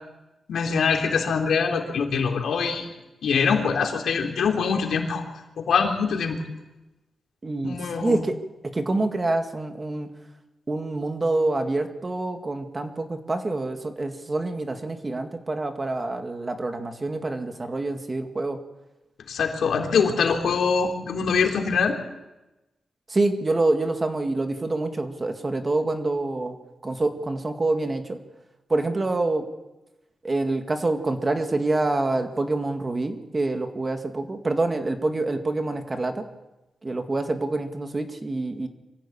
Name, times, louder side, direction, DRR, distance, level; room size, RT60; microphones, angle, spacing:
voice 1, 0.5-2.9 3.2-5.2 5.6-6.4 7.6-8.2 19.3-22.0, left 5 dB, 90° left, 2 dB, 3.6 m, -23 dB
voice 2, 7.4-8.3 8.7-10.1 10.7-18.6 23.1-26.6 26.8-28.2 28.7-29.5 30.2-36.3 36.8-38.7, right 2 dB, 25° right, 6 dB, 2.0 m, -26 dB
24.5 x 15.5 x 8.7 m, 1.0 s
wide cardioid pair, 135°, 0 cm